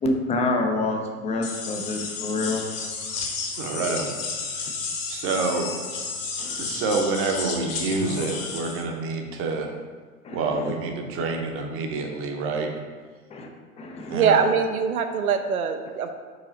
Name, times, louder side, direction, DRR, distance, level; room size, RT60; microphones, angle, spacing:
voice 1, 0.0-2.6 6.4-6.6 8.8-8.9 10.2-10.7 13.3-13.5 13.8-14.2, left 2 dB, 15° left, 3 dB, 0.5 m, -27 dB
sound 1, 1.4-8.8, left 4 dB, 35° left, 1.3 m, -32 dB
voice 2, 3.6-4.8 5.1-5.7 6.6-9.7 10.3-12.7 14.1-14.4, right 3 dB, 30° right, 3 dB, 0.8 m, -28 dB
voice 3, 14.1-16.1, right 6 dB, 75° right, 6 dB, 0.7 m, -22 dB
4.9 x 4.7 x 4.0 m, 1.5 s
figure-of-eight pair, 95°, 44 cm